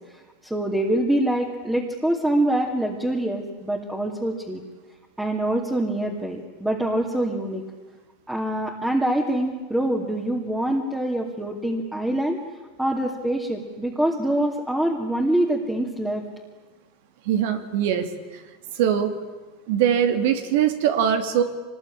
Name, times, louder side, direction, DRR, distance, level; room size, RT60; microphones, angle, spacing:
voice 1, 0.4-4.6 5.2-7.6 8.3-12.4 12.8-16.2, right 1 dB, 5° right, -1 dB, 2.6 m, -25 dB
voice 2, 17.3-18.1 18.7-19.2 19.7-21.4, right 9 dB, 70° right, 7 dB, 2.5 m, -21 dB
24.5 x 20.5 x 10.0 m, 1.3 s
supercardioid pair, 135°, 0 cm